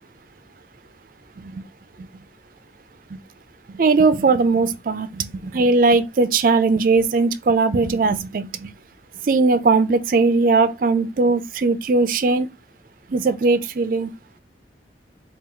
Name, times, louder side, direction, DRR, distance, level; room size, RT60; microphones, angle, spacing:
voice 1, 3.7-8.7 9.2-12.5 13.1-14.1, right 3 dB, 50° right, 0.4 m, -19 dB
4.3 x 2.3 x 3.7 m
head